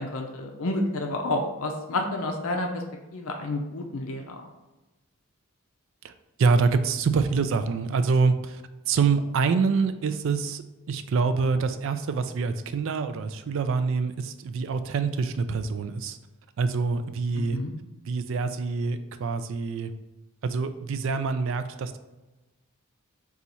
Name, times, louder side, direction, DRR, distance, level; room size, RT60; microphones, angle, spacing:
voice 1, 0.0-2.8 3.1-4.4 17.4-17.7, left 2 dB, 70° left, 3 dB, 0.5 m, -30 dB
voice 2, 6.4-8.6 8.9-10.6 10.9-16.2 16.6-17.6 18.1-19.9 20.4-22.0, right 4 dB, 60° right, 10 dB, 0.3 m, -25 dB
4.0 x 2.4 x 4.2 m, 1.1 s
head